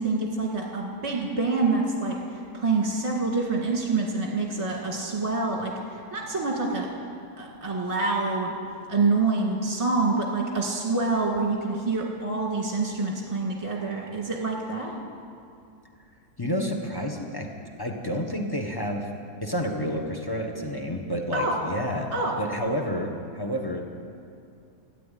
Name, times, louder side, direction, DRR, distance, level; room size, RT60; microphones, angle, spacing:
voice 1, 0.0-6.9 7.4-8.5 8.9-14.9 21.3-21.6 22.1-22.4, right 3 dB, 20° right, -1 dB, 1.8 m, -26 dB
voice 2, 16.4-17.5 17.8-19.1 19.4-22.1 22.4-23.9, equal, 15° left, 2 dB, 1.3 m, -29 dB
14.0 x 9.3 x 9.3 m, 2.5 s
omnidirectional pair, 1.7 m